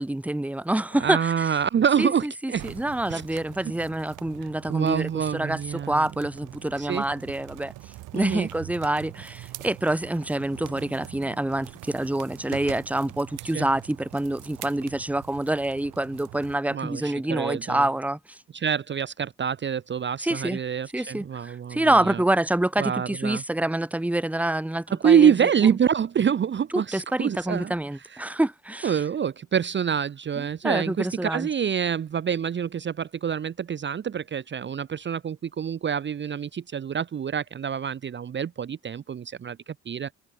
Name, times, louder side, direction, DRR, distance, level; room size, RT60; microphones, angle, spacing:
voice 1, 0.0-1.5 2.0-5.6 5.9-7.7 8.1-18.2 20.2-20.6 20.9-25.3 26.7-28.9 30.4-31.5, right 1 dB, 5° right, 1.1 m, -27 dB
voice 2, 1.0-2.7 3.1-3.7 4.7-6.1 6.8-7.0 8.1-8.5 13.4-13.7 16.7-17.9 18.5-22.2 22.8-23.4 24.9-27.7 28.1-28.2 28.8-40.1, right 8 dB, 40° right, 0.7 m, -26 dB
sound 1, 2.6-16.6, right 17 dB, 90° right, 1.2 m, -44 dB
cardioid pair, 90°, 30 cm